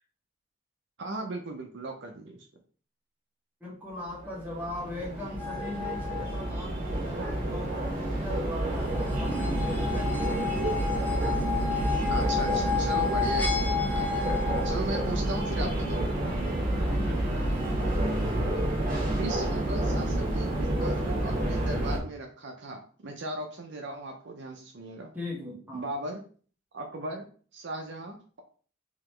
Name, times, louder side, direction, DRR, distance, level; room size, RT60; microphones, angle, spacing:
voice 1, 1.0-2.4 12.0-14.3 14.6-16.0 19.2-25.1 25.7-26.2 26.7-27.3 27.5-28.4, right 2 dB, 60° right, 3 dB, 0.6 m, -37 dB
voice 2, 3.6-10.4 16.7-17.9 25.1-25.9, left 2 dB, 10° right, -4 dB, 1.3 m, -40 dB
sound 1, 4.1-22.0, right 1 dB, 45° right, 1.3 m, -29 dB
sound 2, 5.4-6.5 8.9-14.7, left 6 dB, 10° left, 0.6 m, -32 dB
3.8 x 2.9 x 3.2 m, 0.42 s
head